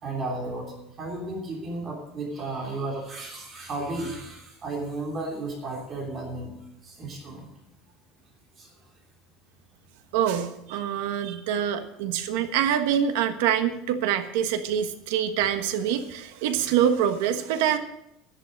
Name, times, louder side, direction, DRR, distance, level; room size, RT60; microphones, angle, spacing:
voice 1, 0.0-7.5 8.6-8.9 12.3-12.4, right 2 dB, 25° right, 0 dB, 3.1 m, -34 dB
voice 2, 10.1-17.8, right 9 dB, 80° right, 8 dB, 1.3 m, -25 dB
11.5 x 11.0 x 6.6 m, 0.83 s
cardioid pair, 180°, 0 cm